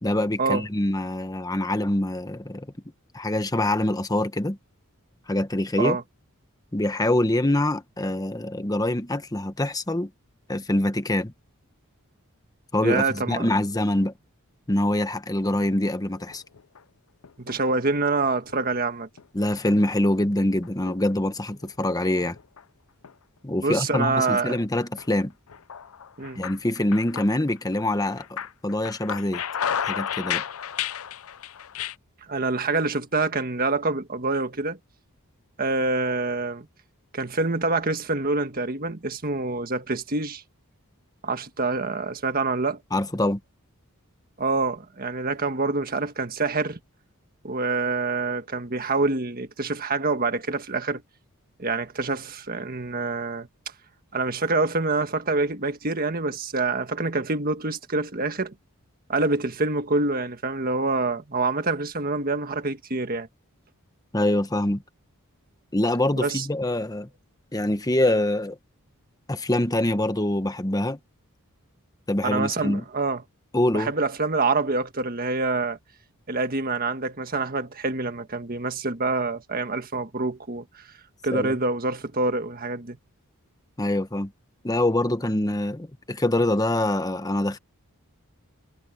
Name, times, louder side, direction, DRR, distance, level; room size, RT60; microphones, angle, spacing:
voice 1, 0.0-2.7 3.1-4.6 5.3-6.0 6.7-10.1 10.5-11.3 12.7-14.1 14.7-16.4 19.3-22.4 23.4-25.3 26.4-29.4 29.8-30.4 42.9-43.4 64.1-64.8 65.7-67.1 67.5-68.6 69.3-71.0 72.1-72.8 73.5-73.9 81.3-81.5 83.8-84.3 84.6-87.6, left 1 dB, 15° left, 1.1 m, -24 dB
voice 2, 12.8-13.4 17.4-19.1 23.6-24.6 26.2-26.4 32.3-34.8 35.6-36.7 37.1-40.4 41.2-42.8 44.4-46.8 47.4-51.0 51.6-53.5 54.1-58.5 59.1-63.3 66.2-66.5 72.2-73.2 73.7-75.8 76.3-80.8 81.2-83.0, right 3 dB, 40° right, 1.6 m, -26 dB
sound 1, 16.1-16.8 17.2-17.9 18.2-18.8 19.2-19.3 20.2-21.2 21.6-22.6 23.0-23.1 24.0-24.6 25.0-25.2 25.5-27.8 28.1-32.0, left 9 dB, 70° left, 0.6 m, -33 dB
head